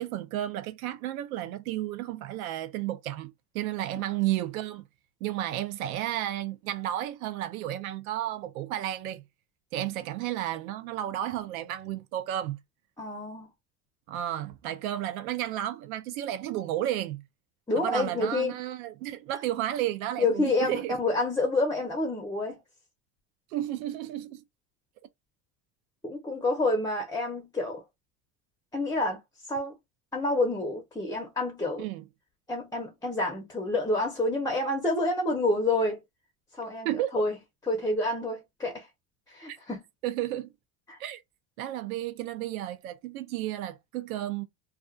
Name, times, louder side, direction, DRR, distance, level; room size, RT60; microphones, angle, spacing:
voice 1, 0.0-4.8 5.2-9.2 9.7-12.6 14.1-17.2 17.8-21.0 23.5-24.4 31.8-32.0 36.8-37.1 39.5-39.6 40.0-40.5 41.0-41.2 41.6-44.4, right 13 dB, 90° right, 0.6 m, -32 dB
voice 2, 13.0-13.5 17.7-18.5 20.2-22.6 26.0-27.8 28.7-29.2 29.5-29.7 30.1-31.8 32.5-36.0 36.5-36.9 37.1-37.4 37.7-38.9 39.3-39.8 40.9-41.0, left 2 dB, 10° left, 0.8 m, -28 dB
2.4 x 2.3 x 2.4 m
supercardioid pair, 105°, 41 cm